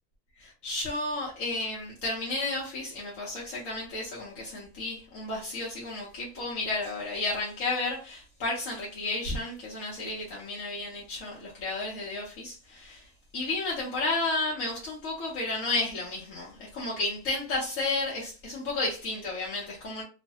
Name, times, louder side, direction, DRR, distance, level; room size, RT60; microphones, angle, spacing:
voice 1, 0.4-20.0, left 2 dB, 60° left, 1.1 m, -32 dB
3.0 x 2.1 x 2.8 m
omnidirectional pair, 1.7 m